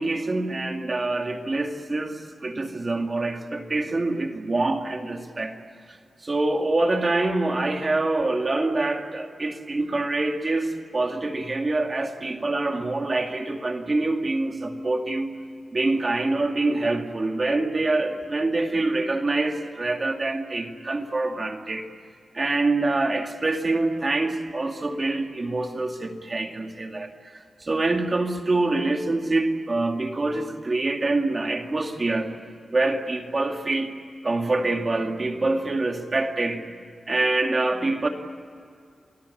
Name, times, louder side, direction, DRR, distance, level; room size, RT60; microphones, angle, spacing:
voice 1, 0.0-5.6 6.2-15.3 15.7-21.9 22.3-27.3 27.6-32.3 32.7-33.9 34.2-36.6 37.1-38.1, right 2 dB, 30° right, 4 dB, 2.3 m, -25 dB
29.5 x 20.0 x 8.5 m, 2.3 s
wide cardioid pair, 140°, 0 cm